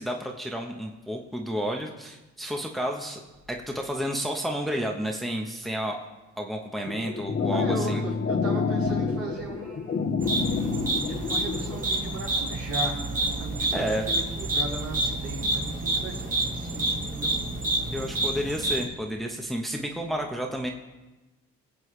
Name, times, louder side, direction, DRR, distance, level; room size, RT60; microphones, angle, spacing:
voice 1, 0.0-3.2 3.5-6.0 6.4-8.0 13.7-14.1 17.9-20.7, equal, ahead, 1 dB, 1.2 m, -31 dB
sound 1, 6.9-11.8, left 4 dB, 35° left, 1.2 m, -28 dB
voice 2, 7.4-17.3, right 2 dB, 70° right, -6 dB, 5.0 m, -37 dB
sound 2, 10.2-18.9, right 2 dB, 25° right, 2.6 m, -28 dB
22.0 x 7.8 x 3.3 m, 1.1 s
cardioid pair, 90°, 30 cm